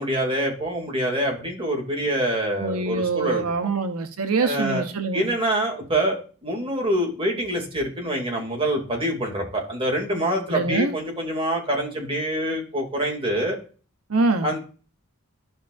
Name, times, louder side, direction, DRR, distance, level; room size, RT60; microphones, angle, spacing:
voice 1, 0.0-3.4 4.4-4.8 5.1-13.6 14.4-14.6, right 1 dB, 25° right, 2.5 m, -25 dB
voice 2, 2.6-5.2 10.5-11.0 14.1-14.5, right 3 dB, 85° right, 0.8 m, -24 dB
13.0 x 5.7 x 2.5 m
head